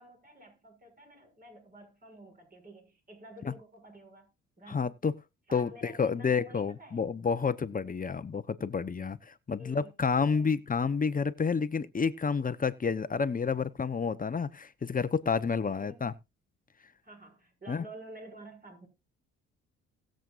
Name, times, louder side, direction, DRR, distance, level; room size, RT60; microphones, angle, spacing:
voice 1, 0.0-4.3 4.6-4.9 5.5-7.1 9.6-10.5 15.6-16.1 17.0-18.9, right 1 dB, 30° right, 6.6 m, -50 dB
voice 2, 4.7-5.1 5.5-16.1 17.7-17.8, left 5 dB, 30° left, 0.9 m, -30 dB
20.0 x 7.7 x 2.5 m
cardioid pair, 90°, 30 cm